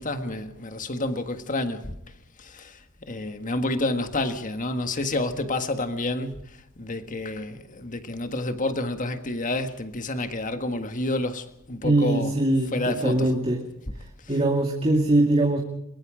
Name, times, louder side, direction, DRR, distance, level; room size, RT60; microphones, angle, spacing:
voice 1, 0.0-1.9 2.4-6.4 6.8-12.3 12.7-13.3, left 2 dB, 40° left, 1.7 m, -29 dB
voice 2, 11.8-13.6 14.3-15.6, right 2 dB, 30° right, 2.3 m, -22 dB
23.0 x 22.5 x 5.1 m
head